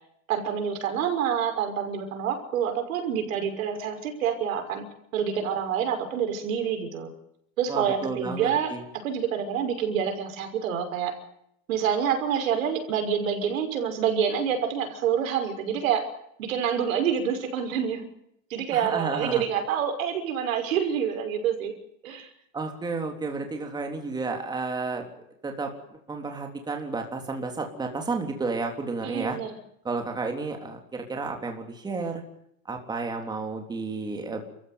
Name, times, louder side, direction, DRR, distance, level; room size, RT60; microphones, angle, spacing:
voice 1, 0.3-4.8 5.1-7.1 7.6-11.2 11.7-16.1 16.4-18.1 18.5-21.7 22.0-22.3 29.0-29.5, right 8 dB, 80° right, 6 dB, 6.0 m, -27 dB
voice 2, 7.7-8.8 18.7-19.4 22.5-25.1 25.4-25.7 26.1-29.4 29.8-32.2 32.7-34.4, right 3 dB, 10° right, 3 dB, 3.4 m, -31 dB
30.0 x 15.0 x 9.4 m, 0.75 s
supercardioid pair, 155°, 40 cm